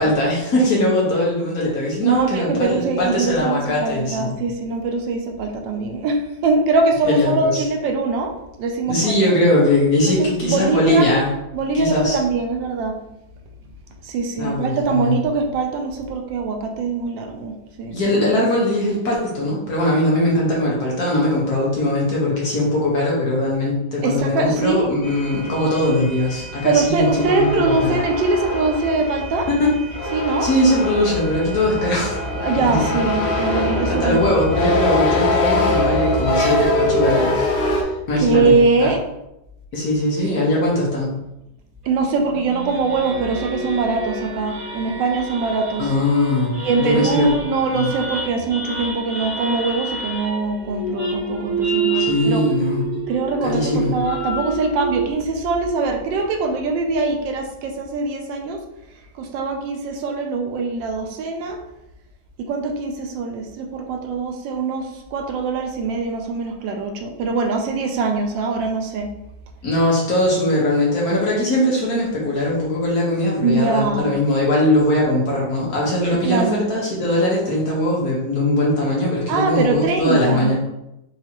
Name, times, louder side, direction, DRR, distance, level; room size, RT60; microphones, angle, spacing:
voice 1, 0.0-4.3 7.0-7.6 8.9-11.3 11.7-12.2 14.4-15.2 17.9-28.0 30.4-32.2 32.7-32.8 33.9-38.5 38.8-38.9 39.7-41.1 45.8-47.4 47.7-47.9 51.9-53.0 53.4-53.9 69.6-80.5, left 1 dB, 55° left, -4 dB, 1.5 m, -20 dB
voice 2, 2.0-8.3 8.6-9.2 10.1-11.1 11.5-13.0 14.0-17.5 17.8-18.0 24.0-24.9 26.6-29.5 30.1-30.5 32.3-34.3 38.2-39.1 41.9-45.9 46.6-52.4 53.1-58.6 59.1-61.6 62.5-69.1 73.4-74.1 76.1-76.7 79.3-80.5, right 3 dB, 80° right, 4 dB, 1.3 m, -22 dB
sound 1, 25.0-37.8, left 1 dB, 75° left, 0.5 m, -23 dB
sound 2, 41.8-55.1, right 3 dB, 55° right, 2.2 m, -28 dB
4.7 x 2.9 x 2.9 m, 0.87 s
omnidirectional pair, 2.0 m